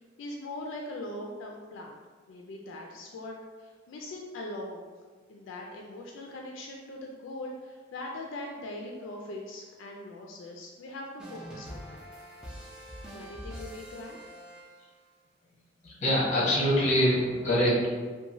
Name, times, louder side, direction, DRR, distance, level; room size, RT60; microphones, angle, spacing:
voice 1, 0.2-1.9 2.3-3.3 3.6-4.9 5.3-12.0 13.1-14.2, left 1 dB, 85° left, 0 dB, 0.3 m, -41 dB
sound 1, 11.2-15.1, equal, 5° right, 0.4 m, -44 dB
voice 2, 15.8-17.9, equal, 40° left, -6 dB, 0.9 m, -24 dB
2.9 x 2.2 x 2.5 m, 1.4 s
head